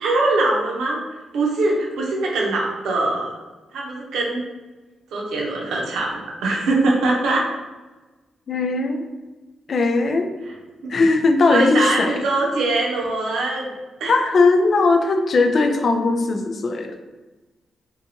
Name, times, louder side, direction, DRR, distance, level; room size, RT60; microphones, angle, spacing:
voice 1, 0.0-1.0 1.3-3.3 3.7-4.4 5.1-7.4 11.5-13.7 14.0-14.1, right 2 dB, 85° right, -2 dB, 0.6 m, -22 dB
voice 2, 8.5-9.1 9.7-10.3 10.9-12.2 14.1-17.0, left 3 dB, 60° left, 6 dB, 0.3 m, -19 dB
2.7 x 2.3 x 2.7 m, 1.2 s
cardioid pair, 65°, 0 cm